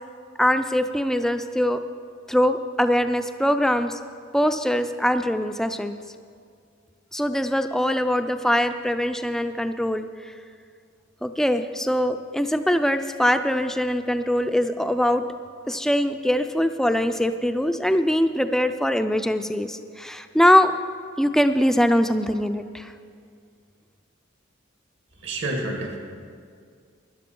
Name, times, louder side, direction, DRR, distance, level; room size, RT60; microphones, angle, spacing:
voice 1, 0.4-1.8 2.3-4.0 4.3-6.0 7.1-10.1 11.2-15.2 15.7-20.7 21.2-22.9, equal, ahead, 9 dB, 0.4 m, -22 dB
voice 2, 25.2-26.0, right 2 dB, 65° right, 1 dB, 1.9 m, -28 dB
13.5 x 11.0 x 5.3 m, 2.2 s
head